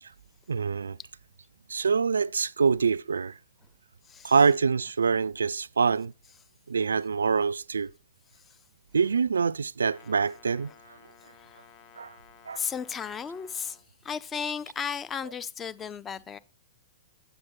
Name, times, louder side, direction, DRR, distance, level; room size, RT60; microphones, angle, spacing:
voice 1, 0.5-1.0 1.7-3.4 4.2-6.1 6.7-7.9 8.9-11.0 12.0-12.1 12.5-12.7, right 5 dB, 85° right, 0.3 m, -25 dB
Brass instrument, 9.8-13.9, left 8 dB, 40° left, 1.4 m, -55 dB
voice 2, 12.5-13.8 14.0-16.4, left 7 dB, 20° left, 0.6 m, -34 dB
8.3 x 7.9 x 3.6 m
hypercardioid pair, 115°, 0 cm